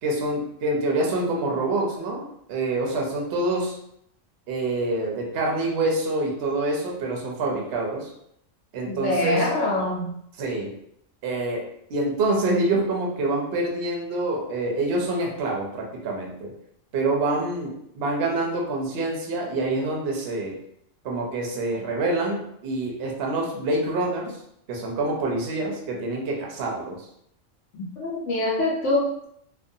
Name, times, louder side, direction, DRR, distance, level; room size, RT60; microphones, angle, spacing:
voice 1, 0.0-3.8 4.5-8.1 8.7-9.5 10.4-10.7 11.2-11.6 11.9-16.5 16.9-20.6 21.0-24.4 24.7-27.1, right 2 dB, 60° right, -1 dB, 0.8 m, -26 dB
voice 2, 8.9-10.1 27.7-29.3, left 1 dB, 75° left, -4 dB, 0.9 m, -25 dB
2.5 x 2.2 x 2.6 m, 0.73 s
omnidirectional pair, 1.3 m